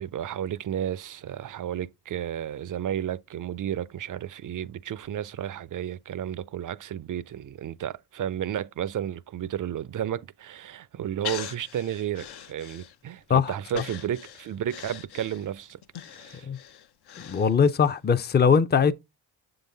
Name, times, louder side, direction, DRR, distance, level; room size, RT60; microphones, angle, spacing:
voice 1, 0.0-15.8 16.1-16.5, right 10 dB, 45° right, 0.5 m, -32 dB
Breathing, 11.2-13.2 13.7-17.9 18.3-18.4, left 10 dB, 60° left, 0.7 m, -41 dB
voice 2, 13.3-13.8 16.5-16.6 17.2-18.9, left 6 dB, 25° left, 0.5 m, -21 dB
6.8 x 3.9 x 3.9 m
supercardioid pair, 55°, 44 cm